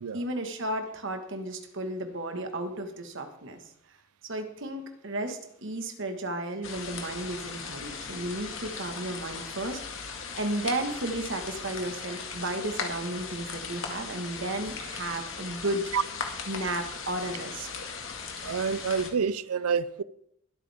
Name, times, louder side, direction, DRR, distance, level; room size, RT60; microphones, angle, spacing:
voice 1, 0.1-3.6 4.2-15.8 16.5-17.7, right 1 dB, 60° right, 1.7 m, -33 dB
sound 1, 6.6-19.1, left 5 dB, 60° left, 2.0 m, -38 dB
voice 2, 18.4-20.0, right 6 dB, 90° right, 0.6 m, -28 dB
22.0 x 8.6 x 3.6 m
head